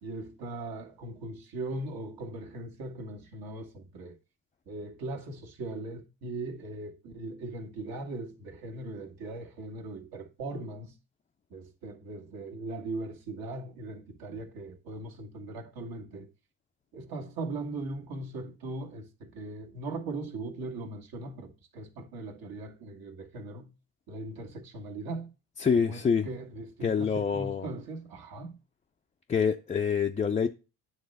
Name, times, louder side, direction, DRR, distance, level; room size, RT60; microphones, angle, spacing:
voice 1, 0.0-4.2 4.7-10.9 11.5-16.3 16.9-23.7 24.1-25.3 25.8-28.6, right 2 dB, 60° right, 1.8 m, -39 dB
voice 2, 25.6-26.3 26.8-27.7 29.3-30.5, left 6 dB, 20° left, 0.4 m, -26 dB
9.4 x 3.2 x 5.3 m
supercardioid pair, 85°, 40 cm